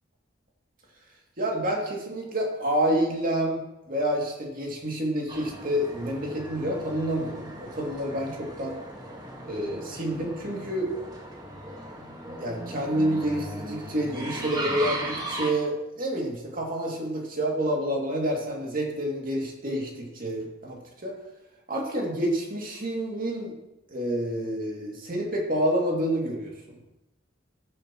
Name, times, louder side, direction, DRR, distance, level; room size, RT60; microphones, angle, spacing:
voice 1, 1.4-8.8 9.4-10.9 12.4-21.1 21.7-23.5 23.9-26.5, right 1 dB, 45° right, -1 dB, 2.4 m, -28 dB
sound 1, 5.3-15.5, right 1 dB, 20° right, 1.4 m, -37 dB
13.5 x 9.6 x 3.0 m, 0.96 s
head